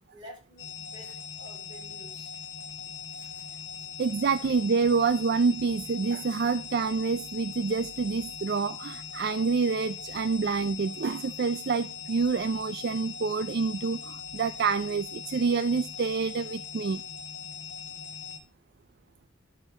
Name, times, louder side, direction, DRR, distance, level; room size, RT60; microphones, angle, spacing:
voice 1, 0.1-2.3 3.1-3.5, equal, 25° right, 4.4 m, -51 dB
sound 1, 0.6-18.4, left 6 dB, 70° left, 2.5 m, -41 dB
voice 2, 4.0-17.0, right 5 dB, 50° right, 0.4 m, -27 dB
11.0 x 6.8 x 4.2 m
head